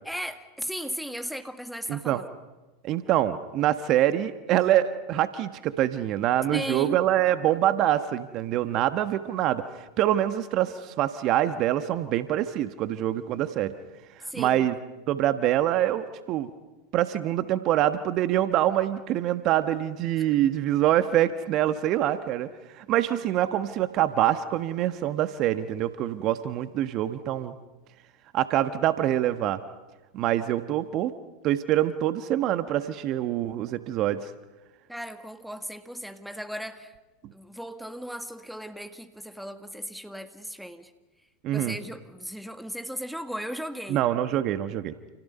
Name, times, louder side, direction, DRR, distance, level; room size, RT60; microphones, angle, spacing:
voice 1, 0.0-2.3 6.5-7.0 14.2-14.7 34.9-36.9 37.3-40.9 41.5-44.0, equal, ahead, 9 dB, 1.8 m, -36 dB
voice 2, 1.9-2.2 2.8-13.7 14.3-14.7 15.1-16.5 16.9-22.5 22.7-27.5 28.3-29.6 30.1-31.1 31.4-34.3 41.4-41.7 43.9-44.9, right 12 dB, 45° right, 11 dB, 1.3 m, -25 dB
29.0 x 29.0 x 5.5 m, 1.1 s
hypercardioid pair, 90°, 0 cm